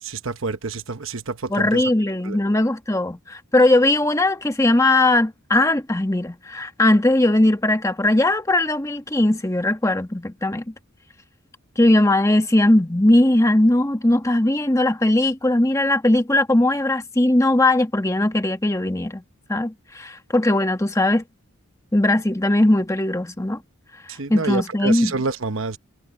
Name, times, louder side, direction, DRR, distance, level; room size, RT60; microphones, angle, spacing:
voice 1, 0.0-1.8 2.2-2.4 24.1-25.8, right 4 dB, 60° right, 1.0 m, -28 dB
voice 2, 1.5-10.7 11.8-19.2 19.5-21.2 21.9-23.6 24.3-25.1, left 1 dB, 15° left, 1.3 m, -19 dB
head